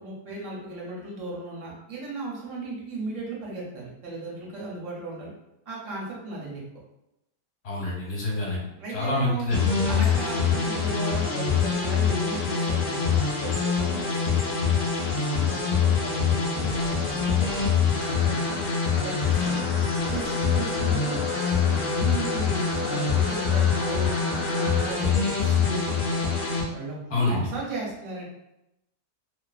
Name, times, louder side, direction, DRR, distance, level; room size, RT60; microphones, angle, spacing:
voice 1, 0.0-5.3 5.7-6.6 8.8-9.5 9.8-14.6 15.1-18.5 19.0-19.7 20.1-21.2 21.6-26.3 26.7-28.2, right 2 dB, 60° right, -5 dB, 0.9 m, -36 dB
voice 2, 7.6-8.6 8.9-9.8 20.7-20.8 27.1-27.4, left 2 dB, 40° left, -5 dB, 0.8 m, -27 dB
sound 1, 9.5-26.6, left 6 dB, 75° left, 0.4 m, -25 dB
sound 2, 18.0-24.9, left 2 dB, 90° left, 1.2 m, -36 dB
2.4 x 2.4 x 2.3 m, 0.87 s
omnidirectional pair, 1.8 m